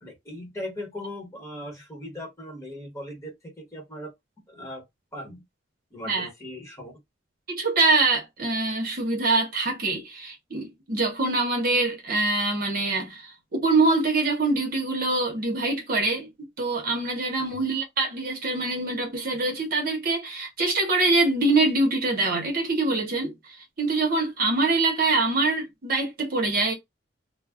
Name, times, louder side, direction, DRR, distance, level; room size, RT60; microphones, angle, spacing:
voice 1, 0.0-4.1 4.5-4.8 5.1-5.4 5.9-6.9 17.5-17.6, left 1 dB, 15° left, 1.1 m, -38 dB
voice 2, 7.5-16.3 16.6-23.3 23.8-26.7, right 3 dB, 50° right, 0.8 m, -24 dB
2.2 x 2.0 x 3.5 m
head